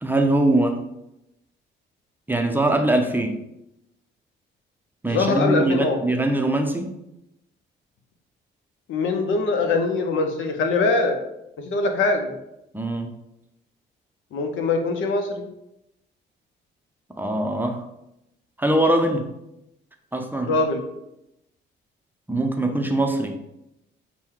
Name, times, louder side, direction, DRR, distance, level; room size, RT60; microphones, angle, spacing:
voice 1, 0.0-0.8 2.3-3.3 5.0-6.9 12.7-13.1 17.1-17.8 18.6-19.3 20.1-20.5 22.3-23.4, right 1 dB, 10° right, 4 dB, 0.5 m, -22 dB
voice 2, 5.0-6.0 8.9-11.2 11.6-12.3 14.3-15.5 20.5-20.8, left 3 dB, 75° left, 5 dB, 0.7 m, -22 dB
6.0 x 2.2 x 3.7 m, 0.85 s
cardioid pair, 90°, 20 cm